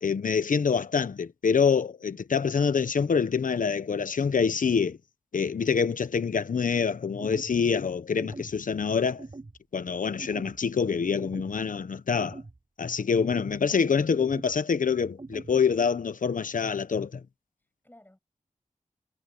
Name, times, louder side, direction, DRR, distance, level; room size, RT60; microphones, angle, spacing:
voice 1, 0.0-5.0 5.3-9.2 9.7-12.4 12.8-17.2, left 6 dB, 80° left, 1.1 m, -26 dB
sound 1, 7.2-7.6 8.2-8.6 9.2-9.6 10.2-10.6 11.2-11.6 12.2-12.6 13.2-13.6 14.2-14.6 15.2-15.6, right 3 dB, 45° right, 5.6 m, -43 dB
voice 2, 13.6-14.0 17.6-18.2, left 1 dB, 15° left, 7.1 m, -56 dB
wide cardioid pair, 75°, 14 cm